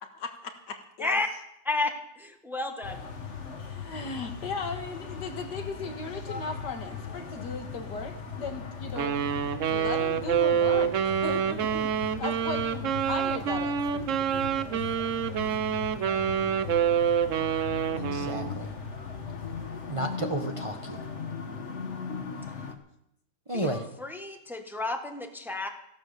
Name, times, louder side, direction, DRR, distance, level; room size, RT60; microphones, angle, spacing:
voice 1, 0.0-1.2 3.6-9.4 9.7-14.9, left 4 dB, 80° left, 5 dB, 2.2 m, -37 dB
voice 2, 1.6-3.0 23.5-25.7, left 2 dB, ahead, 4 dB, 1.4 m, -32 dB
sound 1, 2.8-22.7, left 5 dB, 45° left, 1.6 m, -39 dB
Wind instrument woodwind instrument, 9.0-18.6, right 8 dB, 55° right, 1.0 m, -27 dB
voice 3, 18.0-18.7 19.9-21.0 23.5-23.9, right 1 dB, 20° right, 3 dB, 1.1 m, -32 dB
15.5 x 11.5 x 6.7 m, 0.79 s
omnidirectional pair, 1.8 m